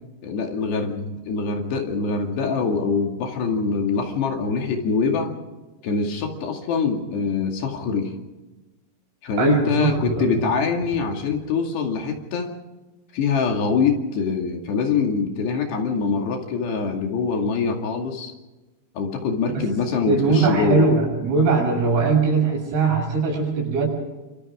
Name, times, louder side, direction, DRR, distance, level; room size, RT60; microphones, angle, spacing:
voice 1, 0.2-5.4 5.8-8.1 9.2-12.5 13.1-18.3 19.0-20.8, left 5 dB, 60° left, 2 dB, 4.1 m, -24 dB
voice 2, 9.4-10.4 19.5-19.7 20.1-23.9, right 4 dB, 80° right, -1 dB, 9.6 m, -20 dB
27.5 x 27.5 x 3.7 m, 1.1 s
omnidirectional pair, 5.9 m